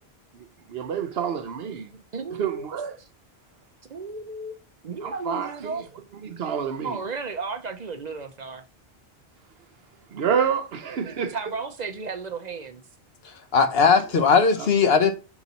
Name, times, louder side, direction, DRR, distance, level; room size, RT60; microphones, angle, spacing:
voice 1, 0.3-2.0 2.4-3.0 5.0-5.8 6.2-7.0 10.1-11.4 14.2-14.3 14.6-14.7, right 7 dB, 70° right, 1.0 m, -28 dB
voice 2, 2.1-2.7 3.0-3.1 3.9-4.6 4.8-5.9 6.8-8.6 11.0-12.8, right 4 dB, 45° right, 0.7 m, -34 dB
voice 3, 13.2-15.1, left 5 dB, 70° left, 1.1 m, -19 dB
6.0 x 3.9 x 4.0 m
omnidirectional pair, 1.1 m